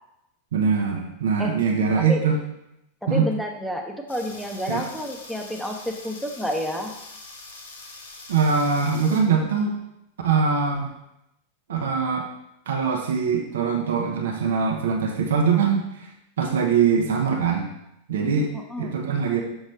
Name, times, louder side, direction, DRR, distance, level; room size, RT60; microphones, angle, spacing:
voice 1, 0.5-2.4 3.1-3.3 4.7-4.8 8.3-9.8 10.2-10.9 11.7-12.3 12.7-16.1 16.4-17.7 18.1-18.5 18.8-19.4, right 5 dB, 60° right, 2 dB, 0.8 m, -22 dB
voice 2, 3.0-6.9 18.5-19.0, left 1 dB, ahead, 1 dB, 0.8 m, -30 dB
sound 1, 4.1-9.2, left 3 dB, 70° left, 1.2 m, -43 dB
6.3 x 6.3 x 3.2 m, 0.84 s
figure-of-eight pair, 90°, 0 cm